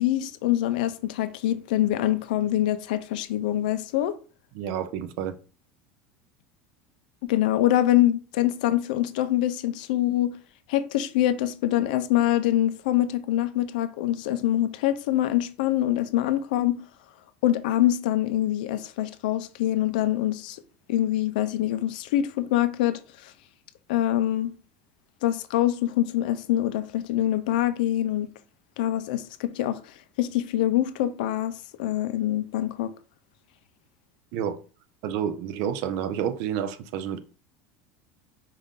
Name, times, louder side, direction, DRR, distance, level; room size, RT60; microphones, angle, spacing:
voice 1, 0.0-4.1 7.2-10.3 10.7-16.8 17.4-20.6 20.9-23.0 23.9-24.5 25.2-28.3 28.8-29.8 30.2-32.9, left 13 dB, 80° left, 0.5 m, -24 dB
voice 2, 4.5-5.4 34.3-34.6 35.0-37.2, right 9 dB, 55° right, 0.5 m, -29 dB
5.4 x 2.6 x 3.6 m
supercardioid pair, 160°, 5 cm